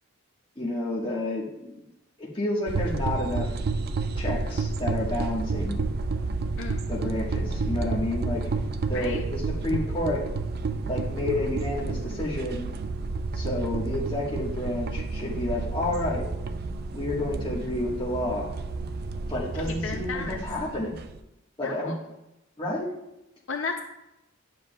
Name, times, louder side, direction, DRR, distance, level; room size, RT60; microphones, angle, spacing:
voice 1, 0.6-1.9 2.2-3.5 4.2-5.9 6.9-8.5 8.9-10.3 10.8-12.7 13.3-16.3 16.9-18.5 19.3-21.0 21.6-21.9 22.6-22.9, left 1 dB, 25° left, -5 dB, 1.3 m, -30 dB
sound 1, 2.7-21.2, right 3 dB, 45° right, 0.4 m, -30 dB
voice 2, 8.9-9.2 19.7-20.4 21.6-22.0 23.5-23.8, left 5 dB, 60° left, 4 dB, 0.5 m, -33 dB
10.5 x 7.2 x 2.2 m, 0.92 s
head